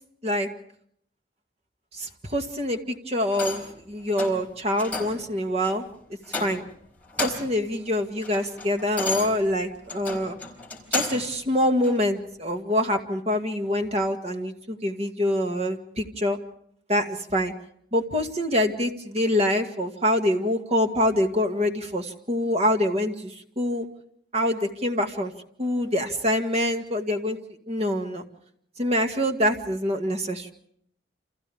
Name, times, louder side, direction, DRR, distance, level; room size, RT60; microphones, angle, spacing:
voice 1, 1.9-5.8 6.3-6.7 7.2-10.4 10.9-16.4 16.9-17.5 17.9-23.9 24.3-25.3 25.6-27.4 27.7-28.2 28.8-30.5, left 1 dB, 35° right, 5 dB, 2.1 m, -25 dB
sound 1, 3.3-3.8 4.2-4.4 4.8-5.2 5.6-5.8 6.3-6.8 7.0-7.6 8.0-11.3 11.8-12.0, left 3 dB, 10° left, 4.3 m, -32 dB
30.0 x 27.0 x 3.6 m, 0.68 s
head